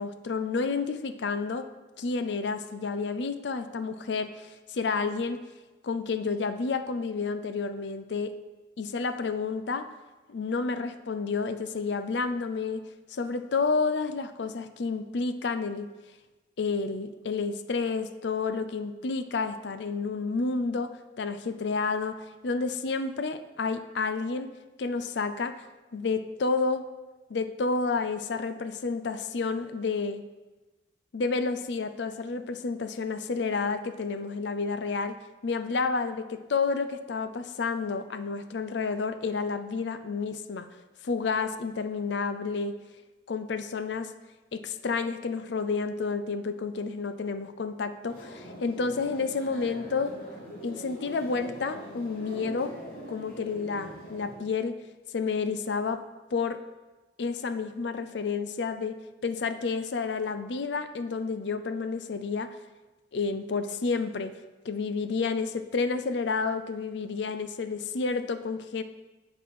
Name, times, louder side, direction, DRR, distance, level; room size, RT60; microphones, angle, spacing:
voice 1, 0.0-1.7 2.0-5.4 5.8-8.4 8.8-9.9 10.3-12.8 13.1-15.9 16.6-24.5 24.8-25.7 25.9-26.8 27.3-30.2 31.1-35.2 35.4-40.7 41.0-42.7 43.3-44.1 44.5-50.1 50.6-52.8 53.1-54.8 55.1-56.0 56.3-56.6 57.2-62.5 63.1-64.3 64.6-68.8, left 4 dB, 75° left, 11 dB, 0.5 m, -30 dB
sound 1, 48.0-54.3, right 1 dB, 50° left, 3.3 m, -43 dB
8.4 x 5.4 x 6.2 m, 1.1 s
head